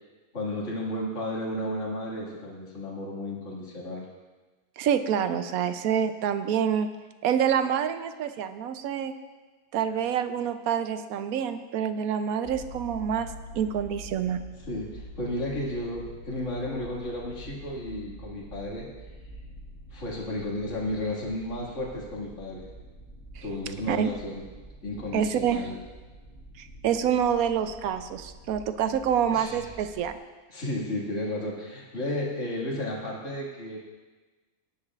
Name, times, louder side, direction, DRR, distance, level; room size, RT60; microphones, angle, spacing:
voice 1, 0.3-4.1 14.7-18.9 19.9-22.6 23.4-24.4 24.8-25.8 29.3-29.6 30.5-33.8, left 1 dB, 55° left, -4 dB, 2.4 m, -33 dB
voice 2, 4.8-6.9 7.2-9.1 9.7-14.4 23.4-23.5 23.9-24.1 25.1-25.6 26.6-30.2, right 8 dB, 75° right, 10 dB, 1.1 m, -27 dB
sound 1, 12.4-30.1, equal, 15° left, 2.0 m, -46 dB
18.5 x 9.8 x 2.4 m, 1.3 s
omnidirectional pair, 1.5 m